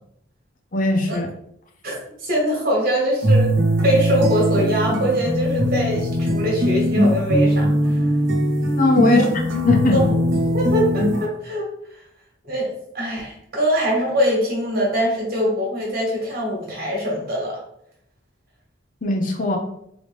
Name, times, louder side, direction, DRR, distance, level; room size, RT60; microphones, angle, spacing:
voice 1, 0.7-1.3 8.8-9.3 9.5-10.0 19.0-19.6, left 3 dB, 45° left, 3 dB, 0.6 m, -19 dB
voice 2, 2.2-3.5 3.8-8.0 9.0-9.2 9.9-10.0 10.4-11.7 12.5-17.6, equal, 50° right, -2 dB, 1.6 m, -23 dB
sound 1, 3.2-11.3, equal, 85° right, 0.8 m, -20 dB
3.9 x 3.4 x 3.4 m, 0.72 s
head